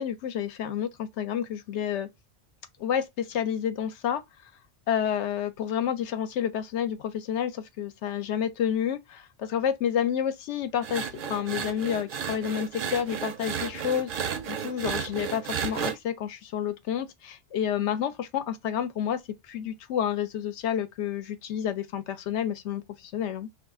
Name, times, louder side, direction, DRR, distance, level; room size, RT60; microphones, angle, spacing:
voice 1, 0.0-2.1 2.8-4.2 4.9-19.2 19.5-23.5, left 9 dB, 80° left, 0.9 m, -30 dB
sound 1, 10.8-15.9, right 7 dB, 55° right, 0.6 m, -33 dB
2.5 x 2.3 x 3.5 m
omnidirectional pair, 1.2 m